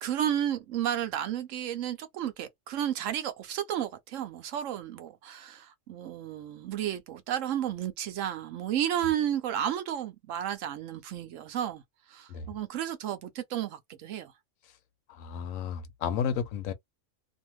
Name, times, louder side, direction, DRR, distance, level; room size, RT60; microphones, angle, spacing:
voice 1, 0.0-11.8 12.1-14.3, right 10 dB, 75° right, 1.0 m, -32 dB
voice 2, 15.1-16.7, left 7 dB, 85° left, 1.0 m, -32 dB
2.7 x 2.4 x 3.0 m
omnidirectional pair, 1.4 m